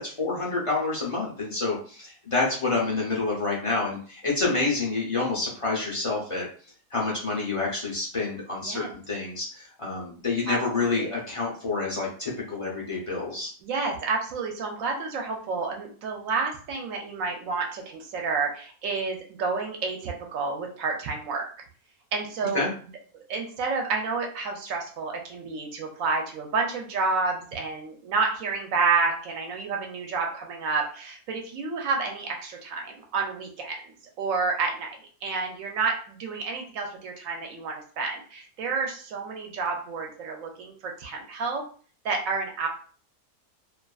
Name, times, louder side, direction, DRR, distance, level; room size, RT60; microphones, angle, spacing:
voice 1, 0.0-6.5 6.9-13.5 22.5-22.7, left 3 dB, 60° left, -4 dB, 0.3 m, -28 dB
voice 2, 10.5-11.1 13.6-21.5 22.1-22.7 23.1-41.6 42.0-42.7, right 4 dB, 70° right, 1 dB, 0.9 m, -30 dB
2.5 x 2.4 x 2.3 m, 0.43 s
omnidirectional pair, 1.6 m